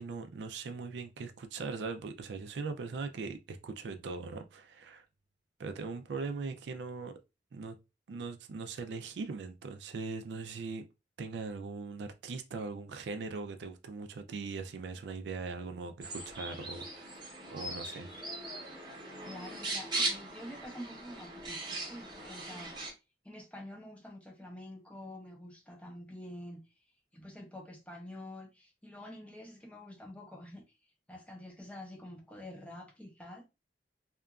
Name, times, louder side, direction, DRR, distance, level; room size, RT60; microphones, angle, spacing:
voice 1, 0.0-5.0 5.6-7.1 7.5-7.7 8.1-10.8 11.2-18.1, right 4 dB, 75° right, 0.4 m, -40 dB
sound 1, 16.0-22.9, right 2 dB, 25° right, 0.8 m, -39 dB
voice 2, 19.3-22.7 23.2-26.6 27.1-30.6 31.1-33.4, left 1 dB, 5° left, 0.5 m, -47 dB
2.8 x 2.3 x 2.3 m
head